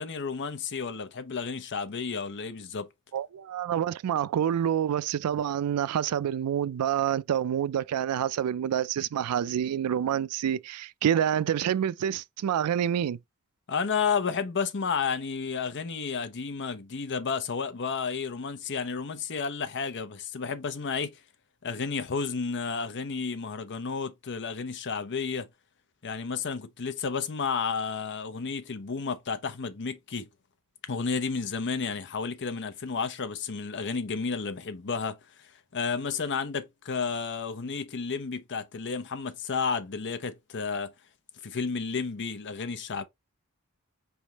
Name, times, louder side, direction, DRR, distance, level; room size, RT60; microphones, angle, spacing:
voice 1, 0.0-2.9 13.7-21.2 21.6-25.5 26.0-30.3 30.9-40.9 41.4-43.0, left 5 dB, 55° left, 0.7 m, -32 dB
voice 2, 3.1-13.2, right 9 dB, 85° right, 0.3 m, -27 dB
5.1 x 3.5 x 2.8 m
head